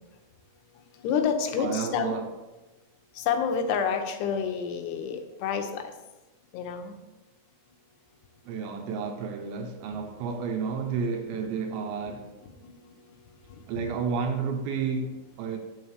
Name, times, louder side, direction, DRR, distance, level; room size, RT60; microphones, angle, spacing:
voice 1, 1.0-2.2 3.2-5.8 6.5-7.0 12.4-12.7 13.5-13.6, left 6 dB, 90° left, 2.9 m, -29 dB
voice 2, 1.6-2.3 8.5-12.3 13.7-15.6, right 5 dB, 80° right, 2.3 m, -31 dB
9.7 x 7.1 x 3.3 m
omnidirectional pair, 4.7 m